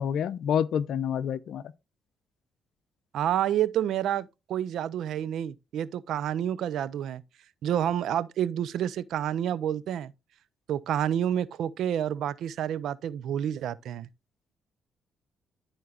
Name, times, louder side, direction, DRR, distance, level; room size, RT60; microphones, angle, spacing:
voice 1, 0.0-1.6, left 8 dB, 70° left, 0.6 m, -28 dB
voice 2, 3.1-7.2 7.6-10.1 10.7-14.1, right 10 dB, 75° right, 0.5 m, -29 dB
12.5 x 4.5 x 2.4 m
cardioid pair, 90°, 0 cm